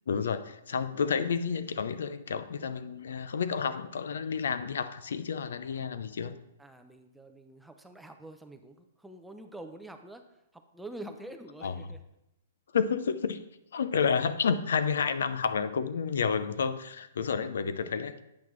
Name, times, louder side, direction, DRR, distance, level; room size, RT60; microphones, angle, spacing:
voice 1, 0.1-6.3 11.6-11.8 12.7-13.4 13.7-18.2, left 6 dB, 80° left, 12 dB, 0.5 m, -30 dB
voice 2, 6.6-12.0, right 1 dB, 5° right, 6 dB, 0.5 m, -46 dB
8.5 x 5.9 x 3.1 m, 0.84 s
hypercardioid pair, 150°, 0 cm